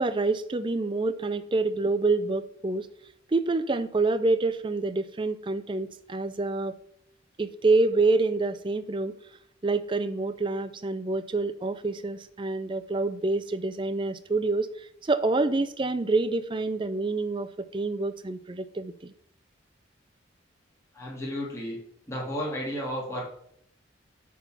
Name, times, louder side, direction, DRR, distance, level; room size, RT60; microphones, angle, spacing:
voice 1, 0.0-2.9 3.3-6.8 7.4-9.2 9.6-19.1, right 3 dB, 25° right, 12 dB, 0.4 m, -27 dB
voice 2, 20.9-21.8 22.1-23.3, equal, 15° left, -4 dB, 1.8 m, -33 dB
9.7 x 3.6 x 5.9 m, 0.69 s
head